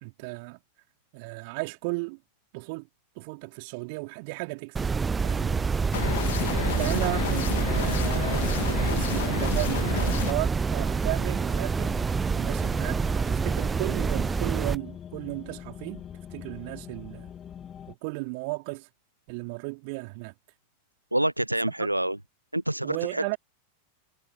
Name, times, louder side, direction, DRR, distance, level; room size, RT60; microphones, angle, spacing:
voice 1, 0.0-0.6 1.1-2.2 2.5-2.9 3.2-4.9 5.2-5.7 6.4-12.0 12.3-17.3 17.9-18.9 19.3-20.3 21.7-21.9 22.8-23.4, right 30 dB, 45° right, 3.5 m, -35 dB
sound 1, 4.8-14.8, right 5 dB, 15° right, 0.4 m, -27 dB
sound 2, 5.9-10.3, left 11 dB, 60° left, 2.2 m, -31 dB
sound 3, 11.7-17.9, left 8 dB, 25° left, 2.8 m, -44 dB
voice 2, 21.1-22.2 22.5-23.3, right 1 dB, 85° right, 0.4 m, -27 dB
figure-of-eight pair, 90°, 0 cm